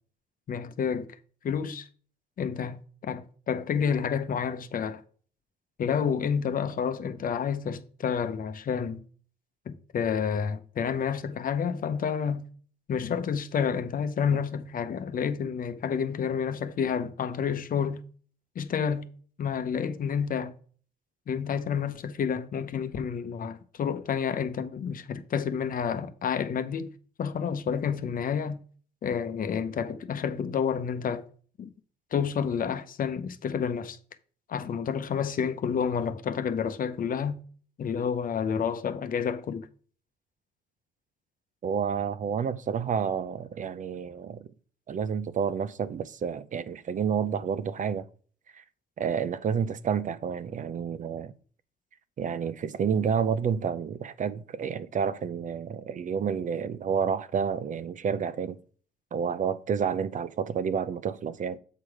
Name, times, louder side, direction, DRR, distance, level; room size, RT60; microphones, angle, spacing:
voice 1, 0.5-1.1 1.4-1.9 2.4-5.0 5.8-9.0 9.7-12.4 12.9-18.0 18.6-19.1 19.4-20.5 21.3-26.9 27.2-28.6 29.0-31.2 31.6-31.7 32.1-34.0 34.5-37.4 37.8-39.7, left 7 dB, 55° left, 0.8 m, -29 dB
voice 2, 41.6-44.5 44.9-48.1 48.5-48.6 49.0-51.3 52.2-58.6 59.1-61.6, right 7 dB, 50° right, 0.6 m, -29 dB
7.5 x 4.8 x 4.7 m
cardioid pair, 95°, 17 cm